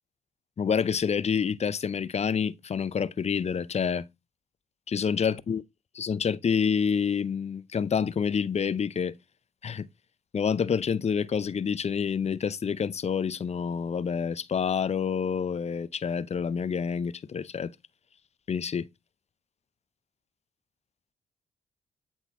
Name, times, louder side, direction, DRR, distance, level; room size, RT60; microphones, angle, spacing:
voice 1, 0.6-4.0 4.9-5.6 6.0-9.1 9.6-9.9 10.3-17.7 18.5-18.9, left 6 dB, 40° left, 0.6 m, -28 dB
8.1 x 3.9 x 3.6 m
hypercardioid pair, 45°, 18 cm